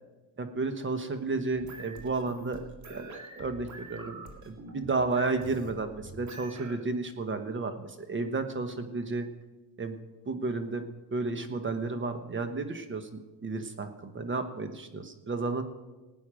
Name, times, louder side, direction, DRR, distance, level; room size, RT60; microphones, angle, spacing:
voice 1, 0.4-2.6 2.9-4.2 4.4-9.3 9.8-10.0 10.3-10.8 11.1-15.6, right 3 dB, 30° right, 8 dB, 1.2 m, -32 dB
sound 1, 1.5-6.8, right 2 dB, 50° right, 2.3 m, -46 dB
18.0 x 9.3 x 5.1 m, 1.2 s
cardioid pair, 115°, 37 cm